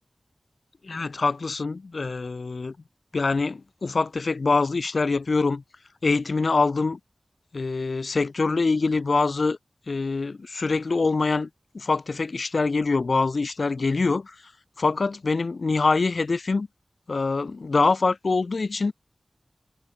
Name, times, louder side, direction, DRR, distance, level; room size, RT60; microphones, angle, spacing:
voice 1, 0.8-2.7 3.1-5.6 6.0-7.0 7.5-9.6 9.9-11.5 11.7-14.3 14.8-16.7 17.1-18.9, left 3 dB, 75° left, 1.7 m, -24 dB
wide cardioid pair, 80°, 0 cm